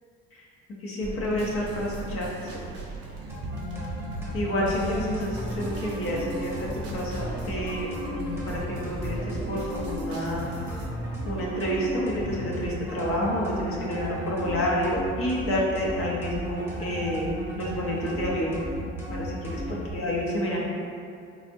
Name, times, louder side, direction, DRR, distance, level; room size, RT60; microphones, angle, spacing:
voice 1, 0.8-2.6 4.3-10.5 11.3-17.3 17.6-18.6 19.1-20.6, equal, 50° left, -4 dB, 0.7 m, -29 dB
sound 1, 1.0-10.9, right 3 dB, 55° right, 0.5 m, -40 dB
sound 2, 3.3-19.9, equal, 5° right, 0.9 m, -34 dB
3.3 x 2.0 x 2.6 m, 2.4 s
supercardioid pair, 75°, 30 cm